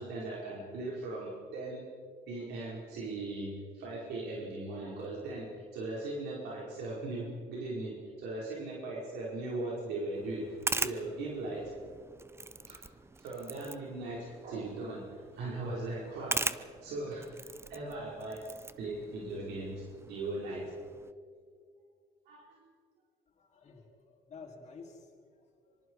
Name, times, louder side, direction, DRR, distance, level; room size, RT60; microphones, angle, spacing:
voice 1, 0.0-1.8 2.3-10.5 10.8-11.7 12.7-12.8 13.2-18.4 18.8-20.6 22.2-22.6, right 2 dB, 80° right, -5 dB, 5.1 m, -39 dB
sound 1, 10.1-21.1, right 3 dB, 15° right, 0.7 m, -41 dB
voice 2, 23.3-25.8, left 4 dB, 40° left, -1 dB, 4.6 m, -52 dB
25.5 x 24.5 x 4.8 m, 2.1 s
cardioid pair, 110°, 17 cm